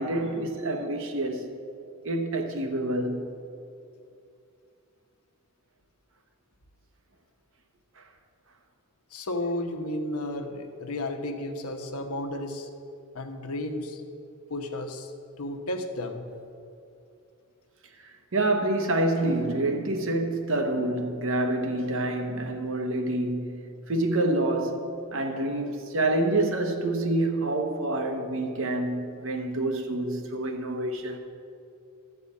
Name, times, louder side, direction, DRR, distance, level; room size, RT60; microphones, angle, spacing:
voice 1, 0.0-1.5 2.0-3.3 18.0-24.9 25.1-31.2, right 2 dB, 60° right, 1.0 m, -27 dB
voice 2, 9.1-12.7 13.1-14.0 14.5-15.1 15.4-16.2, left 1 dB, 85° left, 1.0 m, -33 dB
13.0 x 4.8 x 8.4 m
head